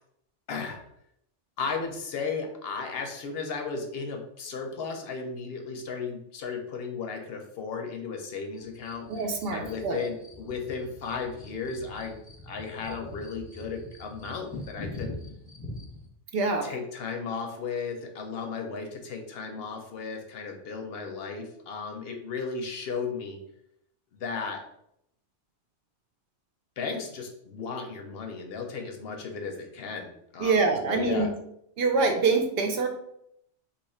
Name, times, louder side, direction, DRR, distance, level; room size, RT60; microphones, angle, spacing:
voice 1, 0.5-0.8 1.6-9.1 9.5-12.2 12.4-15.1 16.6-23.4 24.2-24.6 26.8-31.3, left 5 dB, 65° left, 4 dB, 0.7 m, -35 dB
sound 1, 8.5-16.1, left 2 dB, 10° left, 0.6 m, -43 dB
voice 2, 9.1-10.0 16.3-16.7 30.4-31.3 31.8-32.9, right 4 dB, 65° right, 4 dB, 0.7 m, -25 dB
2.8 x 2.4 x 4.1 m, 0.75 s
omnidirectional pair, 1.2 m